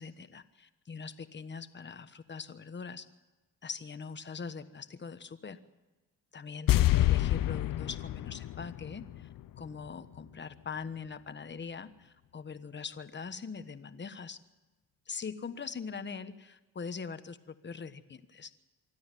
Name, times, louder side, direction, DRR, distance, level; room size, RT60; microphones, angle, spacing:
voice 1, 0.0-3.1 3.6-5.6 6.3-9.3 9.6-14.4 15.1-18.5, left 5 dB, 30° left, 11 dB, 1.3 m, -42 dB
sound 1, 6.7-9.9 10.1-10.2, left 15 dB, 70° left, 0.8 m, -28 dB
25.0 x 13.0 x 9.2 m, 1.2 s
cardioid pair, 95°, 34 cm